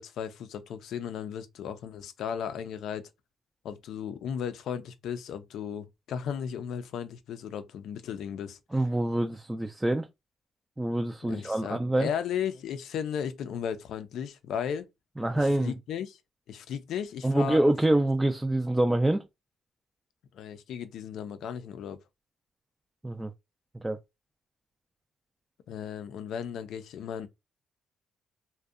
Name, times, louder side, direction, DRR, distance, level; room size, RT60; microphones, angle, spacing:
voice 1, 0.0-3.1 3.6-8.6 11.2-14.9 15.3-16.2 16.5-17.6 20.3-22.0 25.7-27.3, left 8 dB, 75° left, 0.4 m, -35 dB
voice 2, 8.7-10.1 10.8-12.1 15.2-15.7 17.2-19.2 23.0-23.3 23.8-24.0, right 1 dB, 10° right, 0.3 m, -26 dB
2.6 x 2.1 x 2.4 m
cardioid pair, 90°, 0 cm